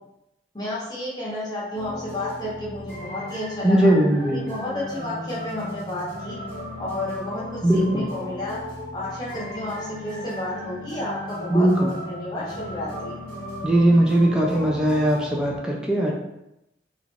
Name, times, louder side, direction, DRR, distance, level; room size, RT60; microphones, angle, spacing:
voice 1, 0.5-3.9 4.3-6.4 6.8-8.6 8.9-13.2, left 1 dB, 20° left, -6 dB, 0.8 m, -31 dB
sound 1, 1.7-15.6, left 1 dB, 50° right, 1.4 m, -36 dB
voice 2, 3.6-4.5 7.6-8.1 11.5-11.9 13.6-16.1, right 1 dB, 5° right, -2 dB, 0.4 m, -19 dB
3.0 x 2.5 x 3.3 m, 0.86 s
head